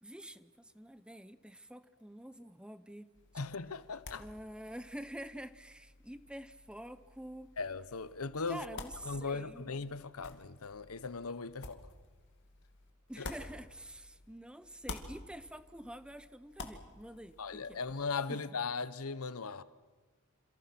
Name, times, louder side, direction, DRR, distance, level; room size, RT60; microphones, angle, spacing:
voice 1, 0.0-3.1 4.2-7.5 8.5-9.6 13.1-17.8 18.3-18.4, right 1 dB, 5° right, 0.8 m, -47 dB
sound 1, 3.1-14.3 14.6-18.0, left 3 dB, 55° left, 2.5 m, -51 dB
voice 2, 3.3-4.2 7.6-8.6 9.0-11.8 13.2-13.3 17.4-19.6, left 4 dB, 85° left, 1.0 m, -38 dB
28.5 x 27.5 x 6.0 m
head